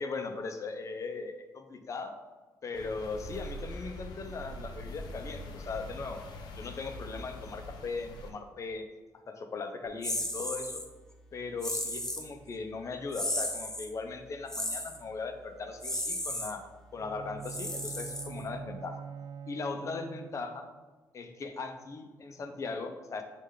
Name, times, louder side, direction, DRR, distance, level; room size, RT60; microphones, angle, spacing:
voice 1, 0.0-2.2 2.6-6.2 6.6-8.9 9.3-10.8 11.3-16.6 16.9-19.0 19.5-20.7 21.1-23.2, left 4 dB, 45° left, 6 dB, 0.7 m, -38 dB
sound 1, 2.7-8.3, left 1 dB, 85° left, 0.7 m, -43 dB
sound 2, 10.0-10.9 11.6-12.3 13.1-13.9 14.5-15.0 15.8-16.5 17.4-18.6, left 1 dB, 10° left, 0.7 m, -34 dB
Bowed string instrument, 16.9-20.7, right 7 dB, 70° right, 0.5 m, -44 dB
8.1 x 3.3 x 3.8 m, 1.3 s
cardioid pair, 100°, 7 cm